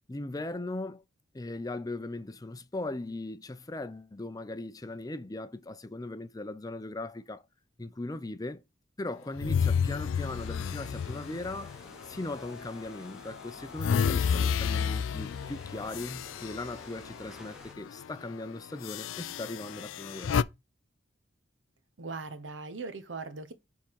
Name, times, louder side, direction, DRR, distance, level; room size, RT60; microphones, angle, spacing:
voice 1, 0.1-1.0 1.3-7.4 7.8-8.6 9.0-11.7 12.1-20.4, left 2 dB, 20° left, 0.5 m, -39 dB
sound 1, 9.4-12.7 13.1-17.5 17.8-18.0 18.8-20.4, left 6 dB, 85° left, 0.4 m, -31 dB
sound 2, 10.4-17.7, equal, 5° right, 0.9 m, -53 dB
voice 2, 22.0-23.5, right 3 dB, 75° right, 0.9 m, -39 dB
7.2 x 3.7 x 4.6 m
head